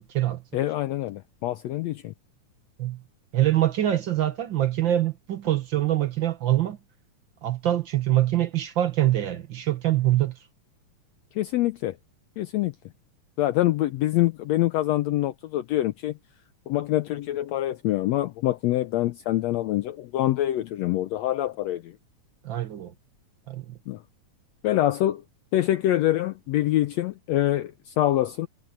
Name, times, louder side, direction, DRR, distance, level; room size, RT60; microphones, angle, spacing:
voice 1, 0.5-2.1 11.3-12.0 12.4-12.7 13.4-16.2 16.7-21.9 23.9-24.0 24.6-25.2 25.5-28.5, left 14 dB, 75° left, 1.7 m, -25 dB
voice 2, 3.3-6.8 7.4-10.4 22.4-22.9 23.5-23.8, right 13 dB, 50° right, 1.5 m, -24 dB
omnidirectional pair, 3.5 m